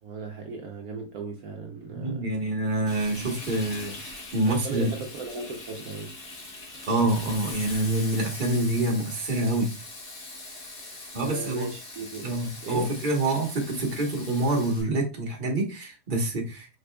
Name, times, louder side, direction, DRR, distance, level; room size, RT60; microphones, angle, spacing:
voice 1, 0.0-2.4 4.5-6.1 10.8-12.3 12.6-12.9, right 3 dB, 70° right, 1.2 m, -37 dB
voice 2, 1.9-4.9 6.9-9.8 11.1-11.7 12.2-16.7, right 2 dB, 35° right, 1.3 m, -26 dB
Frying (food), 2.9-14.8, left 2 dB, 60° left, 1.9 m, -41 dB
5.0 x 4.2 x 2.3 m
omnidirectional pair, 1.7 m